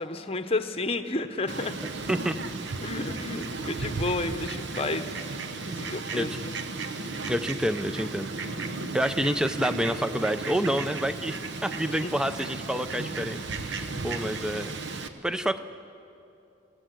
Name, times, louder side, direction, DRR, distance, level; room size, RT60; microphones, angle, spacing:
voice 1, 0.0-1.8 2.8-6.5 12.0-12.1, left 2 dB, 30° left, 8 dB, 0.9 m, -32 dB
Fowl, 1.5-15.1, right 3 dB, 55° right, 1.1 m, -35 dB
voice 2, 7.0-8.3 8.9-15.6, equal, 5° right, 10 dB, 0.6 m, -29 dB
26.5 x 16.5 x 7.7 m, 2.7 s
head